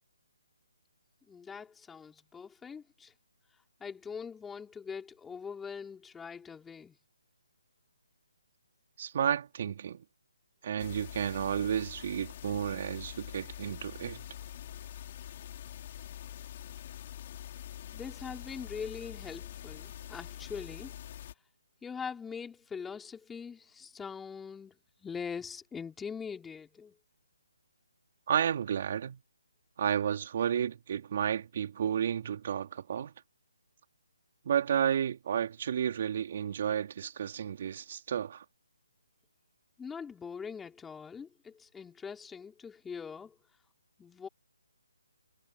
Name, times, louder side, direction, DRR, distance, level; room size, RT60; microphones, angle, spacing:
voice 1, 1.3-3.1 3.8-7.0 17.9-20.9 21.8-27.0 39.8-43.3 44.0-44.3, left 6 dB, 5° left, 4.7 m, -42 dB
voice 2, 9.0-10.0 10.6-14.2 28.3-29.2 29.8-33.1 34.5-38.4, right 8 dB, 45° right, 3.9 m, -32 dB
sound 1, 10.8-21.3, left 11 dB, 40° left, 5.1 m, -45 dB
figure-of-eight pair, 155°, 0 cm